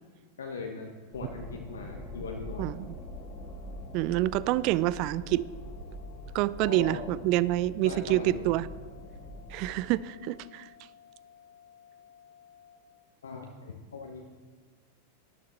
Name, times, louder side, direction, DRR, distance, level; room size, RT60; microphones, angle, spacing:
voice 1, 0.4-2.7 6.6-7.1 7.8-8.5 13.2-14.3, left 4 dB, 65° left, 2 dB, 1.1 m, -39 dB
sound 1, 1.1-10.0, equal, 20° left, 2.4 m, -44 dB
voice 2, 2.6-2.9 3.9-5.4 6.3-8.7 9.5-10.7, right 15 dB, 40° right, 19 dB, 0.4 m, -27 dB
sound 2, 2.8-12.8, left 8 dB, 65° right, 4.1 m, -56 dB
12.0 x 11.0 x 4.0 m, 1.4 s
figure-of-eight pair, 90°, 0 cm